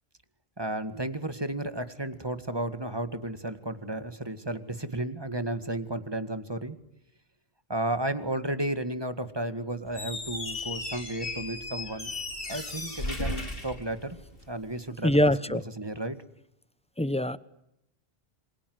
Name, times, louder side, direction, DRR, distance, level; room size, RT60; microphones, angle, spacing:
voice 1, 0.6-6.8 7.7-12.2 12.5-14.2 14.5-16.2, right 1 dB, 25° right, 11 dB, 2.0 m, -33 dB
Squeak, 9.9-14.5, left 2 dB, 65° left, 3.8 m, -36 dB
voice 2, 15.0-15.6 17.0-17.4, left 1 dB, 5° left, 16 dB, 1.0 m, -23 dB
28.0 x 26.5 x 7.9 m, 0.82 s
omnidirectional pair, 1.0 m